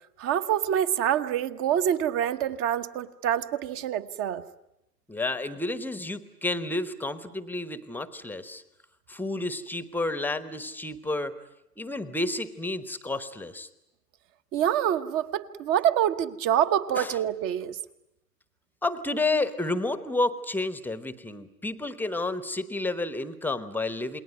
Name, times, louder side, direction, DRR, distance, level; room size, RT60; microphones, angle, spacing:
voice 1, 0.2-4.4 14.5-17.8, right 10 dB, 30° right, 11 dB, 1.2 m, -26 dB
voice 2, 5.1-8.6 9.1-11.3 11.8-13.7 16.9-17.2 18.8-24.2, left 2 dB, 5° left, 13 dB, 1.1 m, -30 dB
28.5 x 21.0 x 9.4 m, 0.85 s
figure-of-eight pair, 110°, 49 cm